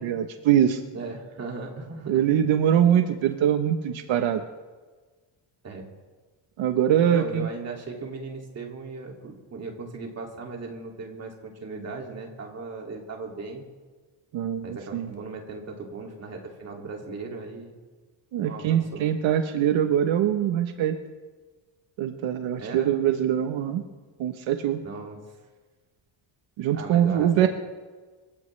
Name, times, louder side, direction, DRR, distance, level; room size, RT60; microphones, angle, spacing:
voice 1, 0.0-0.8 2.1-4.4 6.6-7.5 14.3-15.1 18.3-21.0 22.0-23.8 24.2-24.8 26.6-27.5, right 10 dB, 75° right, 7 dB, 1.1 m, -23 dB
voice 2, 0.9-2.3 5.6-5.9 7.1-13.6 14.6-17.8 18.3-19.0 22.6-22.9 24.8-25.2 26.7-27.5, right 3 dB, 35° right, 1 dB, 2.5 m, -37 dB
25.0 x 16.0 x 3.3 m, 1.3 s
cardioid pair, 175°, 47 cm